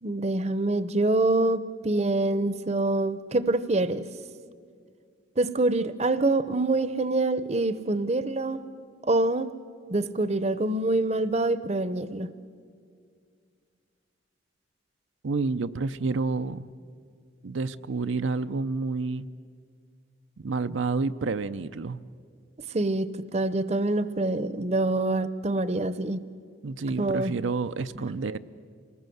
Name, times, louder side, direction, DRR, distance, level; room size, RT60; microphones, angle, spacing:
voice 1, 0.0-4.0 5.4-8.6 9.0-9.5 9.9-12.3 22.7-26.2 27.0-27.3 27.9-28.1, right 2 dB, 35° right, 14 dB, 0.7 m, -25 dB
voice 2, 15.2-16.7 17.4-19.3 20.4-22.0 26.6-28.4, right 3 dB, 90° right, 10 dB, 0.6 m, -29 dB
27.5 x 19.5 x 7.9 m, 2.2 s
head